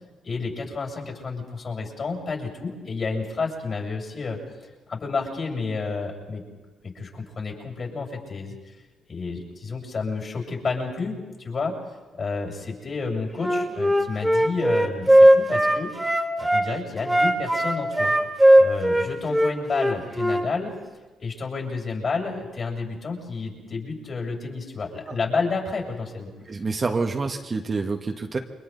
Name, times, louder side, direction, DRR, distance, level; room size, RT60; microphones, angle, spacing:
voice 1, 0.2-4.4 4.9-6.4 6.8-8.7 9.1-11.8 12.1-18.1 18.6-20.7 21.2-26.3, left 4 dB, 45° left, 1 dB, 7.6 m, -30 dB
Wind instrument woodwind instrument, 13.4-16.7 17.0-20.4, right 1 dB, 5° right, 2.4 m, -18 dB
voice 2, 26.5-28.4, right 4 dB, 35° right, 4 dB, 1.5 m, -27 dB
29.5 x 24.0 x 4.1 m, 1.2 s
cardioid pair, 90°, 0 cm